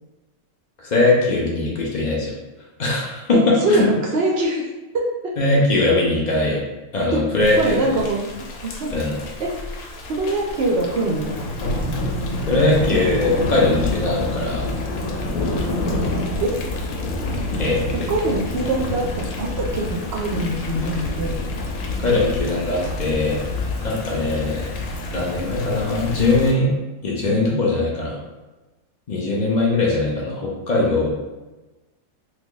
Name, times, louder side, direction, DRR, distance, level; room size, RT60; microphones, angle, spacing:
voice 1, 0.8-2.3 2.8-3.9 5.4-6.6 6.9-7.8 8.9-9.2 12.4-14.7 17.6-17.8 22.0-23.4 23.8-24.7 25.1-26.7 27.0-28.2 29.1-31.1, left 2 dB, 55° left, -3 dB, 0.5 m, -20 dB
voice 2, 3.3-4.7 4.9-5.3 7.1-7.2 7.6-8.3 8.6-8.9 9.4-9.5 10.1-11.3 16.4-16.6 17.9-21.4, right 1 dB, 65° right, -1 dB, 0.6 m, -23 dB
Thunder / Rain, 7.4-26.5, left 1 dB, 85° left, 1.0 m, -28 dB
2.9 x 2.3 x 3.7 m, 1.1 s
omnidirectional pair, 1.5 m